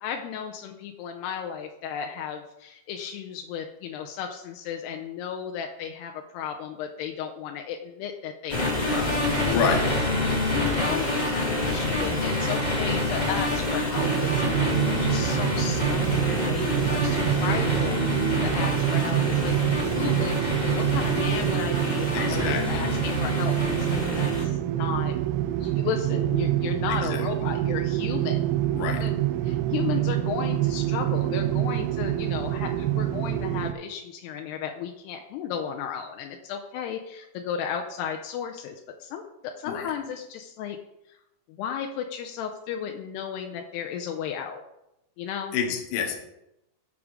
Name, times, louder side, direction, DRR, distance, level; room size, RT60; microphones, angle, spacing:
voice 1, 0.0-9.5 10.2-25.1 25.6-28.4 28.9-40.8 41.1-41.2 41.5-44.6 45.2-45.6, left 8 dB, 85° left, 3 dB, 2.6 m, -34 dB
sound 1, 8.5-24.4, left 2 dB, 35° left, 0.6 m, -27 dB
voice 2, 9.4-9.8 22.1-22.6 26.9-27.3 28.7-29.1 39.7-39.9 45.5-46.2, left 6 dB, 65° left, 4 dB, 2.3 m, -28 dB
sound 2, 14.0-33.7, right 13 dB, 80° right, 2.3 m, -26 dB
12.5 x 4.8 x 4.9 m, 0.88 s
omnidirectional pair, 4.9 m